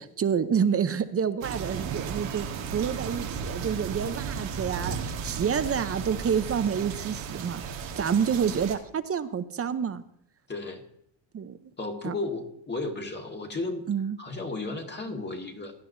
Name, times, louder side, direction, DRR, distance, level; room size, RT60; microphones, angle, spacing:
voice 1, 0.0-10.0 11.3-11.6 12.0-12.1 13.9-14.2, right 7 dB, 30° right, 12 dB, 0.7 m, -28 dB
sound 1, 1.4-8.7, right 6 dB, 75° right, 1.6 m, -35 dB
voice 2, 10.5-10.8 11.8-13.9 14.2-15.7, left 2 dB, 20° left, 3 dB, 1.7 m, -34 dB
16.0 x 11.0 x 2.7 m, 0.72 s
supercardioid pair, 95°, 47 cm